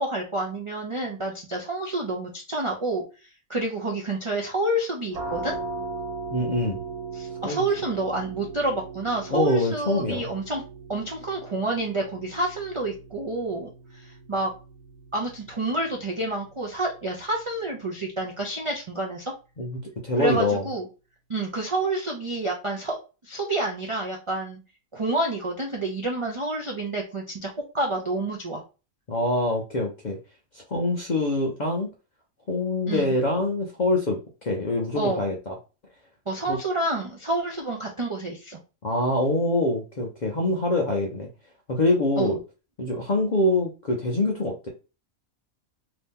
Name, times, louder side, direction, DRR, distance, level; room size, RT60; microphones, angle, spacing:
voice 1, 0.0-3.0 3.5-5.5 7.1-10.6 10.9-14.5 15.1-19.3 20.2-20.9 21.3-23.0 23.2-24.6 24.9-28.6 32.9-33.1 34.9-35.2 36.3-38.6 42.2-42.3, right 2 dB, 50° right, -1 dB, 0.3 m, -28 dB
sound 1, 5.1-16.6, right 3 dB, 70° right, 1.3 m, -38 dB
voice 2, 6.3-6.8 7.4-7.6 9.3-10.3 19.6-20.6 29.1-30.2 30.5-31.9 32.5-35.5 36.5-36.6 38.8-41.3 41.7-42.4 42.8-44.7, left 2 dB, 55° left, 0 dB, 0.5 m, -25 dB
2.9 x 2.7 x 3.6 m, 0.31 s
omnidirectional pair, 1.5 m